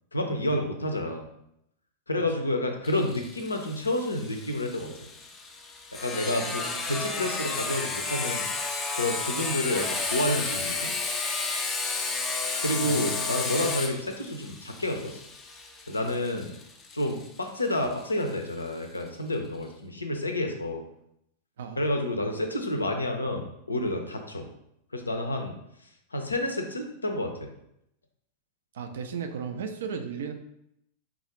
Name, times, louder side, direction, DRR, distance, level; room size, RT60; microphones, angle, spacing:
voice 1, 0.1-1.3 2.1-5.0 6.0-8.5 8.9-10.9 12.6-15.2 15.9-16.5 16.9-20.8 21.8-24.5 24.9-25.6 26.1-27.5, left 1 dB, 80° left, 4 dB, 0.4 m, -29 dB
Sawing, 2.8-18.3, left 3 dB, 20° left, 0.4 m, -32 dB
voice 2, 6.2-6.8 12.8-13.4 21.6-21.8 28.7-30.3, right 6 dB, 60° right, 6 dB, 0.4 m, -36 dB
3.7 x 2.3 x 3.0 m, 0.77 s
figure-of-eight pair, 90°, 0 cm